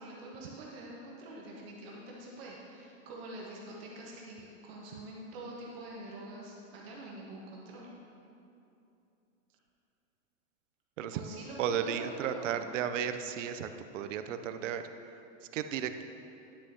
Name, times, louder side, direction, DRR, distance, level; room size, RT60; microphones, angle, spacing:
voice 1, 0.0-7.9 11.1-12.8, right 2 dB, 50° right, -3 dB, 1.2 m, -45 dB
voice 2, 11.6-14.9 15.4-16.0, right 8 dB, 80° right, 9 dB, 0.6 m, -34 dB
9.9 x 6.2 x 2.8 m, 2.7 s
supercardioid pair, 160°, 37 cm